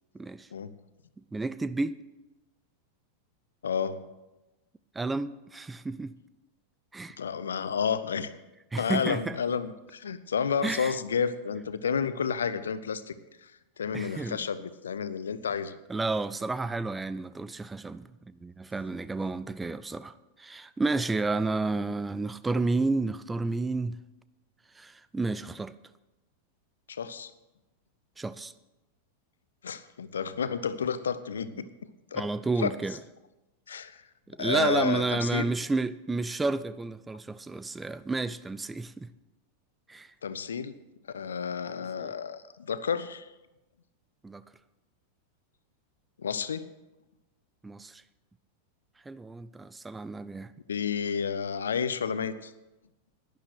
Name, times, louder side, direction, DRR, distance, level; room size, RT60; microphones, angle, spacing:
voice 1, 0.1-0.5 1.3-1.9 4.9-6.1 6.9-7.2 8.7-9.4 10.6-11.0 13.9-14.4 15.9-24.0 24.8-25.7 28.2-28.5 31.6-31.7 32.1-33.0 34.3-39.1 39.9-40.1 42.0-42.1 44.2-44.4 47.6-48.0 49.1-50.5, right 3 dB, 10° right, 0.4 m, -31 dB
voice 2, 3.6-4.0 7.2-8.3 8.8-13.1 13.4-13.5 13.8-15.8 26.9-27.3 29.6-31.7 32.1-32.3 32.6-32.7 33.7-34.0 34.4-35.5 40.2-40.7 41.1-43.3 46.2-46.7 50.7-52.5, left 6 dB, 70° left, 0.7 m, -31 dB
11.5 x 10.5 x 6.3 m
figure-of-eight pair, 90°, 0 cm